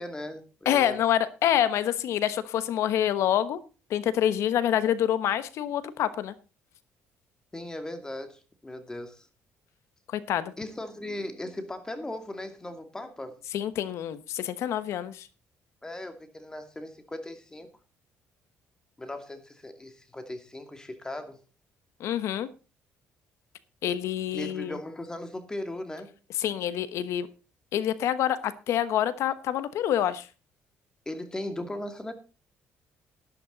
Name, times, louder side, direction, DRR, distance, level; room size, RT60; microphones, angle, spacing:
voice 1, 0.0-1.0 7.5-9.3 10.6-13.4 15.8-17.7 19.0-21.4 24.3-26.1 31.1-32.1, left 1 dB, 15° left, 2.4 m, -38 dB
voice 2, 0.6-3.6 3.9-6.3 10.1-10.5 13.5-15.3 22.0-22.5 23.8-24.8 26.4-27.3 27.7-30.3, left 10 dB, 75° left, 1.1 m, -27 dB
11.5 x 11.5 x 4.0 m
cardioid pair, 105°, 5 cm